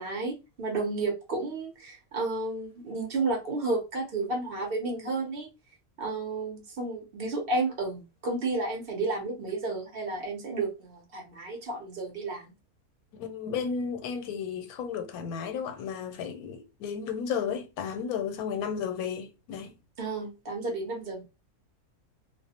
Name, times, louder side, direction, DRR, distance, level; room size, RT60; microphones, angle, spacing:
voice 1, 0.0-5.5 6.0-12.5 20.0-21.2, right 3 dB, 50° right, 0.8 m, -32 dB
voice 2, 13.1-19.7, left 7 dB, 90° left, 1.0 m, -33 dB
2.4 x 2.0 x 2.7 m
omnidirectional pair, 1.5 m